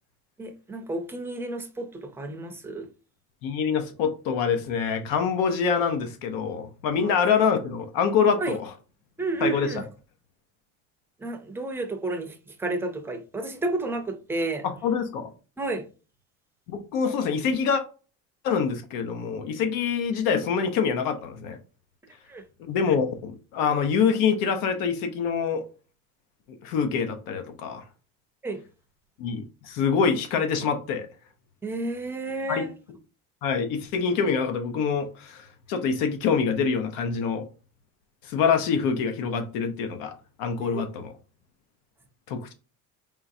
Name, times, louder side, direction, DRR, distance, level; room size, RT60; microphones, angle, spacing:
voice 1, 0.4-2.9 7.0-7.2 8.4-8.6 9.2-9.8 11.2-14.6 15.6-15.9 22.3-22.4 28.4-28.6 31.6-32.7 40.6-40.8, right 2 dB, 5° right, 0.5 m, -31 dB
voice 2, 3.4-8.7 9.4-9.8 14.6-15.3 16.7-17.8 18.4-21.6 22.6-25.6 26.6-27.8 29.2-31.1 32.5-32.6 33.4-37.5 38.2-41.1 42.3-42.5, left 6 dB, 85° left, 0.9 m, -25 dB
4.5 x 3.6 x 2.7 m
cardioid pair, 175°, 32 cm